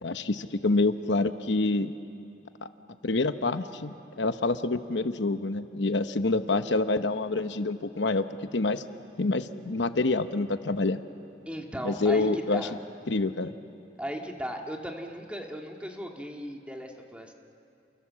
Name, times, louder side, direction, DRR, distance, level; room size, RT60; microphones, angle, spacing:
voice 1, 0.0-1.9 3.0-8.2 8.5-8.8 9.2-11.0 11.8-12.6 13.1-13.5, left 3 dB, 75° left, 9 dB, 0.9 m, -27 dB
voice 2, 11.5-12.7 14.0-17.3, equal, 5° right, 1 dB, 1.9 m, -37 dB
29.0 x 27.0 x 7.5 m, 2.6 s
head